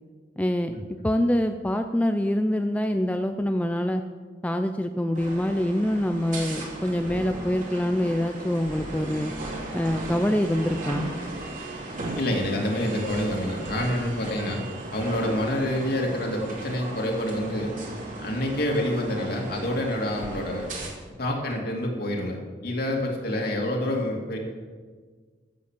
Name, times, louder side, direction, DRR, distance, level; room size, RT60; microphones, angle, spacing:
voice 1, 0.4-0.8 1.0-4.0 4.4-9.3 9.7-11.1, left 1 dB, 10° left, 6 dB, 0.4 m, -25 dB
sound 1, 5.1-20.9, right 2 dB, 45° right, 2.9 m, -36 dB
voice 2, 12.1-14.6 14.9-17.7 18.1-20.7 21.2-24.4, left 1 dB, 55° left, 0 dB, 2.6 m, -27 dB
14.0 x 7.7 x 7.5 m, 1.5 s
head